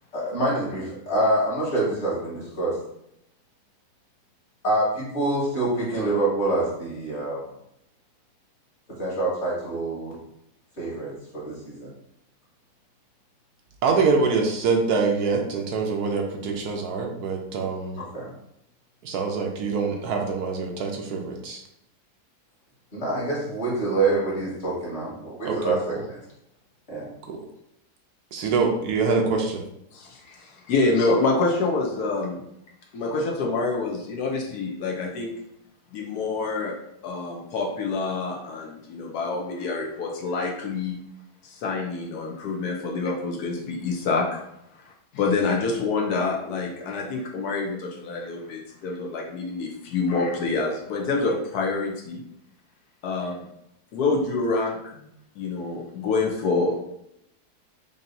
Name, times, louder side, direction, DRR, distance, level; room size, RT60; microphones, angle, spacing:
voice 1, 0.1-2.8 4.6-7.5 9.0-10.2 10.8-11.9 18.1-18.3 22.9-26.2 26.9-27.1, right 2 dB, 45° left, -7 dB, 2.0 m, -26 dB
voice 2, 13.8-18.0 19.0-21.6 25.4-25.8 27.3-27.4 28.3-29.6, right 4 dB, 75° right, 1 dB, 1.1 m, -25 dB
voice 3, 29.9-32.4 32.9-35.3 35.9-36.7 37.0-41.0 41.4-44.4 45.1-52.2 53.0-53.5 53.9-55.1 55.4-56.8, left 3 dB, 70° left, -1 dB, 1.2 m, -27 dB
5.3 x 2.7 x 2.6 m, 0.77 s
omnidirectional pair, 1.8 m